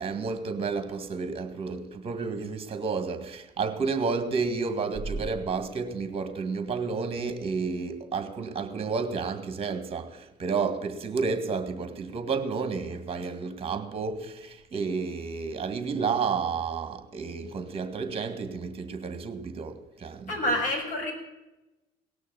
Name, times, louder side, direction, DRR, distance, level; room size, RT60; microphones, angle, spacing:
voice 1, 0.0-20.4, right 5 dB, 35° right, 1.9 m, -31 dB
voice 2, 20.3-21.1, left 1 dB, 50° left, 6.5 m, -27 dB
18.0 x 6.4 x 9.3 m
cardioid pair, 110°, 17 cm